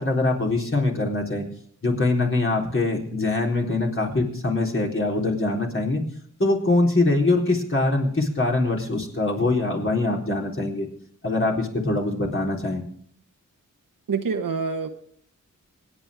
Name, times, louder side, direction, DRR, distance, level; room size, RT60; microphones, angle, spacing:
voice 1, 0.0-1.5 1.8-6.0 6.4-10.9 11.2-12.8, left 2 dB, 40° left, -1 dB, 4.0 m, -23 dB
voice 2, 14.1-14.9, right 5 dB, 90° right, 6 dB, 1.4 m, -26 dB
25.5 x 9.9 x 3.7 m, 0.62 s
wide cardioid pair, 80°, 32 cm